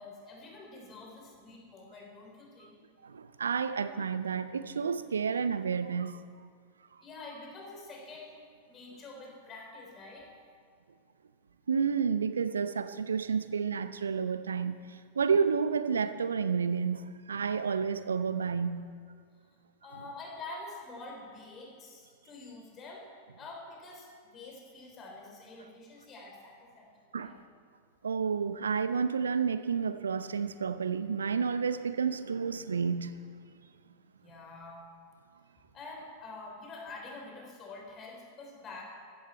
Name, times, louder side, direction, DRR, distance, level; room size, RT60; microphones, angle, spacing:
voice 1, 0.0-2.8 7.0-8.3 8.7-10.3 19.8-23.0 23.4-26.9 27.2-27.3 34.2-34.8 35.7-38.8, left 3 dB, 25° left, -1 dB, 3.9 m, -46 dB
voice 2, 3.0-6.2 11.7-18.9 27.1-27.3 28.0-33.2, right 6 dB, 70° right, 12 dB, 0.6 m, -30 dB
15.0 x 13.5 x 4.4 m, 2.1 s
figure-of-eight pair, 90°, 0 cm